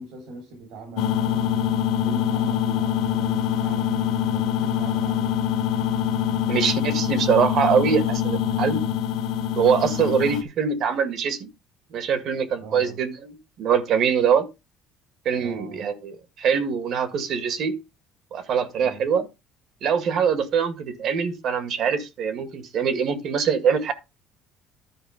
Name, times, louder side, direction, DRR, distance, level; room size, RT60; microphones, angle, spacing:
voice 1, 0.0-5.4 6.2-6.4 12.5-13.0 15.4-15.9 18.8-19.1, right 2 dB, 85° right, 4.1 m, -41 dB
sound 1, 1.0-10.4, left 9 dB, 85° left, 0.9 m, -24 dB
voice 2, 6.5-8.8 9.6-11.5 11.9-14.5 15.3-17.8 18.3-19.3 19.8-23.9, right 7 dB, 55° right, 1.9 m, -23 dB
11.5 x 5.0 x 5.0 m
cardioid pair, 120°, 0 cm